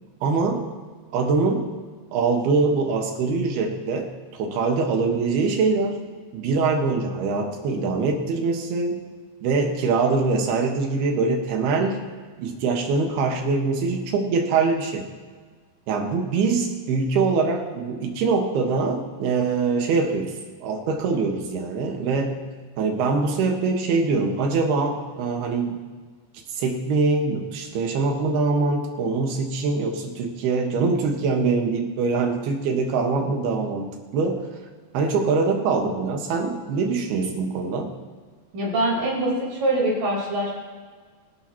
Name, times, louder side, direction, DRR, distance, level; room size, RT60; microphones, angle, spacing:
voice 1, 0.2-0.7 1.1-1.7 2.1-6.0 6.3-9.0 9.4-12.0 12.4-15.1 15.9-20.4 20.6-22.4 22.8-25.8 26.5-34.5 34.9-37.9, right 4 dB, 75° right, 2 dB, 3.4 m, -23 dB
voice 2, 38.5-40.5, right 1 dB, 50° right, -4 dB, 5.7 m, -23 dB
25.0 x 11.5 x 3.0 m, 1.5 s
omnidirectional pair, 4.7 m